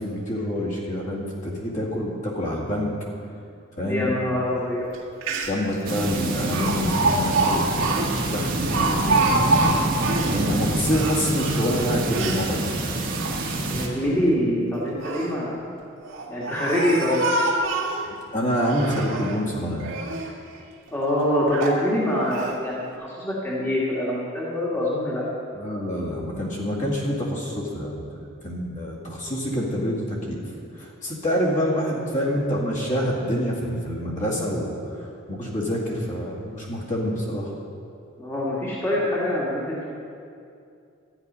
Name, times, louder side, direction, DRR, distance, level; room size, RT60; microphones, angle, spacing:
voice 1, 0.0-2.9 3.8-4.1 5.5-9.5 10.3-13.0 18.3-19.9 25.6-28.0 28.4-30.4 30.8-34.7 35.3-37.5, equal, 35° left, -4 dB, 2.1 m, -27 dB
voice 2, 3.8-4.9 13.7-15.7 16.3-17.2 20.9-25.2 38.2-39.9, left 1 dB, 10° left, -6 dB, 1.7 m, -25 dB
Speech, 4.9-5.0 5.2-5.7 6.5-10.4 10.8-12.5 13.0-13.8 14.8-15.3 16.0-18.1 18.6-19.4 19.8-20.3 20.9-21.0 21.5-21.8 22.3-22.5, right 2 dB, 75° right, 1.9 m, -26 dB
sound 1, 5.8-13.9, right 2 dB, 45° right, 1.4 m, -26 dB
13.0 x 9.6 x 5.5 m, 2.5 s
head